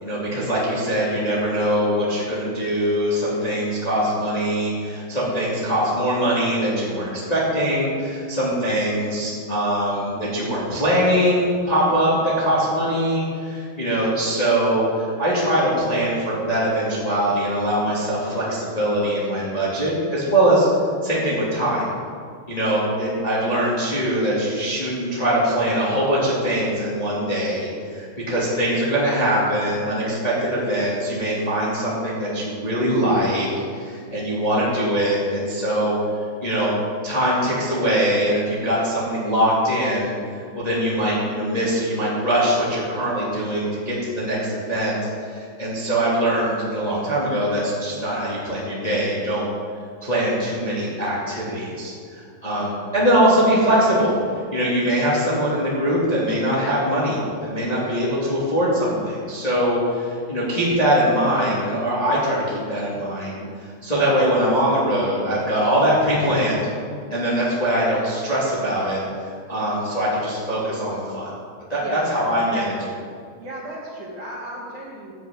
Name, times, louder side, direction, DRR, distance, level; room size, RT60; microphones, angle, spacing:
voice 1, 0.0-20.7 21.0-21.8 22.5-33.5 33.7-36.0 36.4-36.7 37.0-49.5 50.0-54.1 54.5-66.6 67.1-69.0 69.5-71.3 71.7-72.6, equal, 40° left, -7 dB, 0.5 m, -22 dB
voice 2, 71.8-72.3 72.5-73.1 73.4-75.1, right 1 dB, 60° right, -6 dB, 2.1 m, -35 dB
12.5 x 5.9 x 8.5 m, 2.2 s
omnidirectional pair, 5.7 m